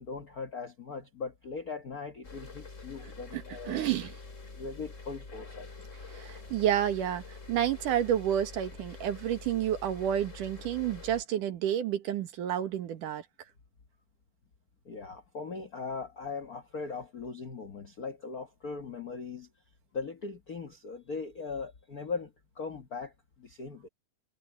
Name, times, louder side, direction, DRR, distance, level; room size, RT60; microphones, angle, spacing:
voice 1, 0.0-3.9 4.5-5.7 14.8-19.5 19.9-23.9, left 4 dB, 85° left, 0.8 m, -39 dB
sound 1, 2.2-11.2, left 3 dB, 25° left, 3.1 m, -46 dB
voice 2, 3.3-4.1 6.1-7.2 7.5-13.2, right 10 dB, 75° right, 3.1 m, -30 dB
omnidirectional pair, 3.8 m